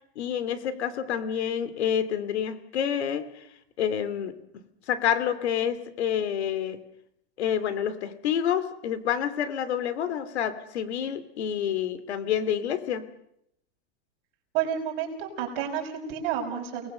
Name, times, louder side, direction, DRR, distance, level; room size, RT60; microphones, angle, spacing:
voice 1, 0.2-3.5 3.8-4.4 4.9-6.8 7.4-13.0, left 9 dB, 90° left, 13 dB, 2.7 m, -28 dB
voice 2, 14.5-16.9, right 9 dB, 40° right, 1 dB, 5.9 m, -30 dB
29.0 x 20.5 x 6.6 m, 0.76 s
supercardioid pair, 170°, 32 cm